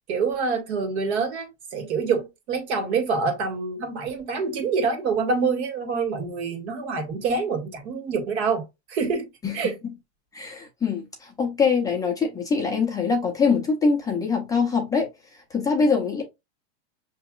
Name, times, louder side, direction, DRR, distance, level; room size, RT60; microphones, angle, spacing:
voice 1, 0.1-8.6 8.9-9.3 9.5-9.7, right 5 dB, 70° right, 1.8 m, -26 dB
voice 2, 10.3-15.1 15.5-16.2, left 5 dB, 10° left, 0.6 m, -23 dB
6.1 x 2.9 x 2.4 m
supercardioid pair, 155°, 35 cm